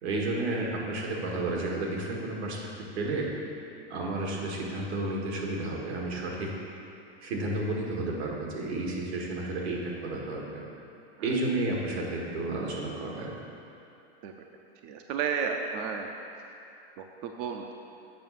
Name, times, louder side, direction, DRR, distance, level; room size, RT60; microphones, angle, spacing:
voice 1, 0.0-2.7 3.0-3.3 3.9-6.5 7.2-10.7 11.2-13.4, right 2 dB, 80° right, -2 dB, 1.8 m, -31 dB
voice 2, 14.8-16.1 17.2-17.7, right 6 dB, 40° right, 3 dB, 0.5 m, -32 dB
7.6 x 5.1 x 5.7 m, 2.8 s
supercardioid pair, 150°, 32 cm